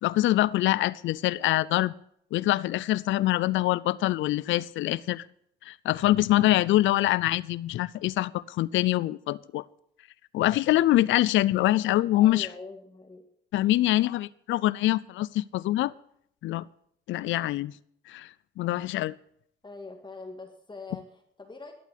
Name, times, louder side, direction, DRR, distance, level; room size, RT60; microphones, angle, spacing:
voice 1, 0.0-1.9 2.3-5.3 5.6-9.6 10.3-12.5 13.5-15.9 16.4-16.7 17.1-17.7 18.1-19.1, left 15 dB, 75° left, 0.4 m, -24 dB
voice 2, 12.1-13.3 19.6-21.7, left 3 dB, 25° left, 1.8 m, -43 dB
12.0 x 8.4 x 8.3 m
cardioid pair, 90°, 20 cm